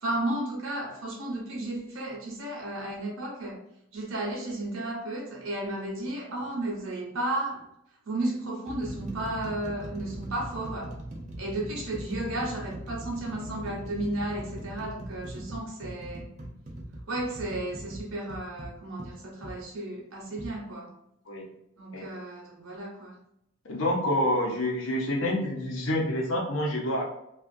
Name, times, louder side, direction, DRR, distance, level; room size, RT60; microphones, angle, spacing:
voice 1, 0.0-3.6 3.9-7.6 8.1-10.9 11.4-16.3 17.1-20.9 21.8-23.2, right 1 dB, 75° right, -1 dB, 0.9 m, -33 dB
sound 1, 6.4-6.6 7.5-7.7 8.3-19.6 20.4-20.6, right 1 dB, 35° right, 0.4 m, -40 dB
voice 2, 23.7-27.0, left 1 dB, 65° left, -1 dB, 0.7 m, -27 dB
2.5 x 2.4 x 2.5 m, 0.79 s
head